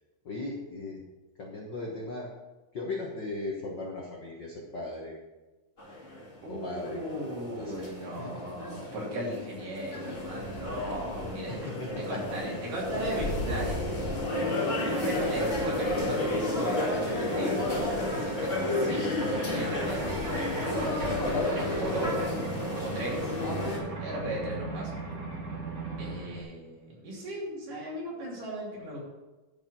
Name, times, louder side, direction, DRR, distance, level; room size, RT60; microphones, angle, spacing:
voice 1, 0.2-1.0 1.4-2.3 2.7-5.2 6.5-7.0 7.6-7.8 8.2-8.4 11.5-12.2 12.5-12.6 14.6-15.0, left 2 dB, 60° left, -1 dB, 1.1 m, -37 dB
sound 1, 5.8-23.8, left 1 dB, 20° left, 1.8 m, -31 dB
voice 2, 6.4-11.7 12.1-13.9 14.8-17.7 18.1-22.4 22.8-23.2 24.0-24.9 26.0-29.0, right 1 dB, 70° right, -4 dB, 4.5 m, -36 dB
sound 2, 15.9-26.4, right 3 dB, 35° right, 1.6 m, -39 dB
11.0 x 5.4 x 6.2 m, 1.1 s
omnidirectional pair, 3.9 m